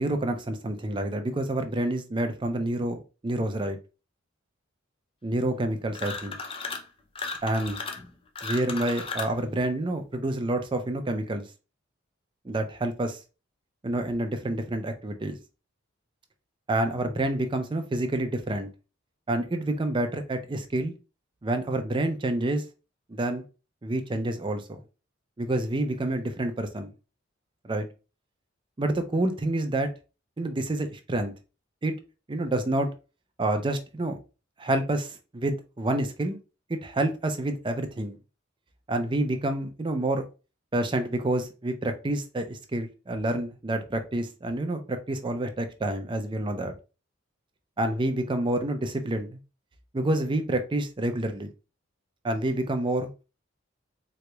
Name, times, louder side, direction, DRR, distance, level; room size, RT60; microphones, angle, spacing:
voice 1, 0.0-3.8 5.2-6.4 7.4-7.8 8.4-11.5 12.4-13.2 13.8-15.4 16.7-18.7 19.3-20.9 21.4-22.6 23.1-23.4 23.8-24.8 25.4-26.9 27.6-27.8 28.8-29.9 30.4-31.3 31.8-31.9 32.3-32.9 33.4-34.2 34.6-36.4 36.7-38.2 38.9-40.2 40.7-46.7 47.8-49.4 49.9-51.5 52.2-53.2, right 1 dB, 25° right, 0.5 m, -28 dB
sound 1, 5.9-6.9 7.2-9.4, left 4 dB, 30° left, 0.5 m, -35 dB
3.8 x 3.0 x 2.2 m
head